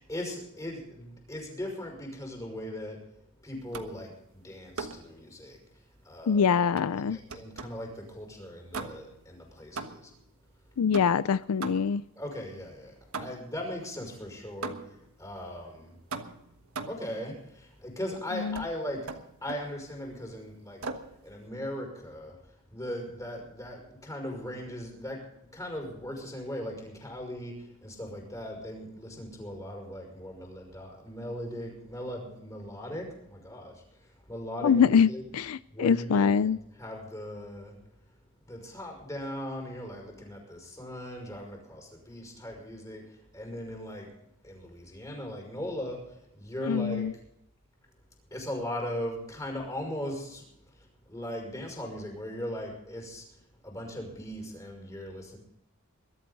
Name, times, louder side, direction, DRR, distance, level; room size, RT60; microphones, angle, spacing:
voice 1, 0.0-3.0 3.4-5.6 6.0-6.5 7.0-10.1 12.2-16.0 16.9-20.8 21.2-22.4 22.7-35.2 35.7-37.8 38.4-44.1 44.4-47.1 48.3-53.4 53.6-55.4, left 1 dB, 15° left, 5.7 m, -39 dB
sound 1, 3.7-4.1 4.8-5.1 6.8-7.9 8.7-9.2 9.8-10.2 10.9-12.1 13.1-13.6 14.6-15.1 16.1-17.1 18.5-18.7 19.1-19.7 20.8-21.2, right 3 dB, 75° right, 1.4 m, -39 dB
voice 2, 6.3-7.2 10.8-12.0 18.4-18.6 34.6-36.6 46.7-47.1, left 6 dB, 75° left, 0.4 m, -24 dB
22.0 x 12.5 x 4.0 m
head